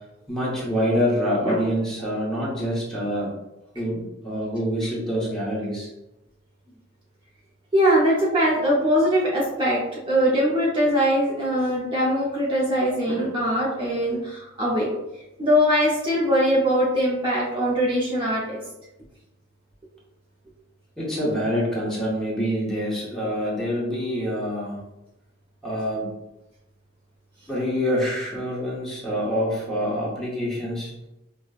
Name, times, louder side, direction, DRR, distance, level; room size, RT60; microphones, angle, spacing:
voice 1, 0.3-3.3 3.7-5.9 21.0-24.8 25.6-26.1 27.5-30.9, equal, ahead, -6 dB, 0.9 m, -26 dB
voice 2, 7.7-14.9 15.4-18.6, equal, 25° right, -6 dB, 0.6 m, -22 dB
5.0 x 2.1 x 2.4 m, 0.95 s
head